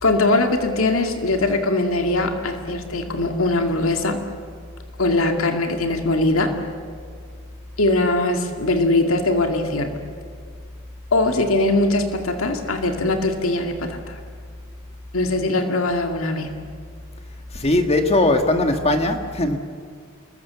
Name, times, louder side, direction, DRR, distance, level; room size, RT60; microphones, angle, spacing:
voice 1, 0.0-4.2 5.0-6.5 7.8-10.0 11.1-14.2 15.1-16.5, left 2 dB, 70° left, 5 dB, 2.2 m, -21 dB
voice 2, 17.5-19.6, left 2 dB, 30° left, 6 dB, 1.8 m, -19 dB
28.0 x 21.5 x 7.0 m, 2.1 s
head